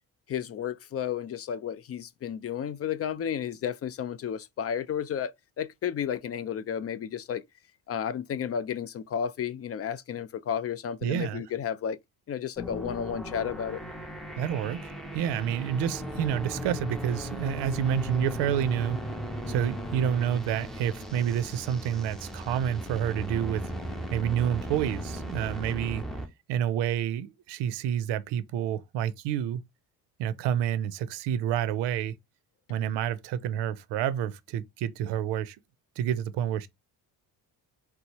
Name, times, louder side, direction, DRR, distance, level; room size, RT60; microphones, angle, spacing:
voice 1, 0.3-5.3 5.6-7.4 7.9-12.0 12.3-13.8 19.4-19.7, left 8 dB, 35° left, 0.4 m, -32 dB
voice 2, 11.0-11.4 14.4-19.1 19.5-23.7 24.1-26.1 26.5-29.6 30.2-32.2 32.7-35.6 36.0-36.7, right 9 dB, 90° right, 0.5 m, -29 dB
sound 1, 12.6-26.3, equal, ahead, 0.7 m, -37 dB
4.2 x 2.0 x 2.9 m
cardioid pair, 85°, 41 cm